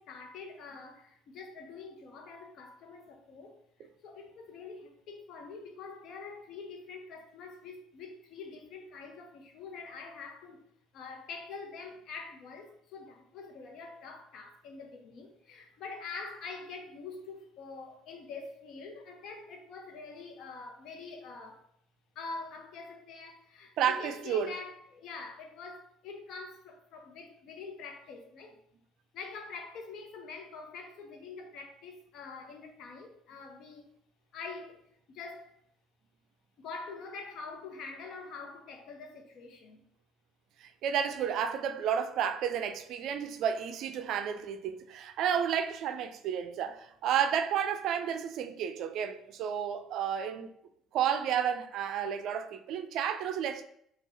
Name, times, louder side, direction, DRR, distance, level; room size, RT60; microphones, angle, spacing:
voice 1, 0.0-10.6 10.9-21.6 22.1-28.6 29.1-33.9 34.3-34.8 35.1-35.5 36.6-39.8, left 4 dB, 60° left, 0.9 m, -45 dB
voice 2, 23.8-24.5 40.6-50.5 50.9-53.6, right 8 dB, 60° right, 0.4 m, -31 dB
6.0 x 2.4 x 2.7 m
hypercardioid pair, 55°, 0 cm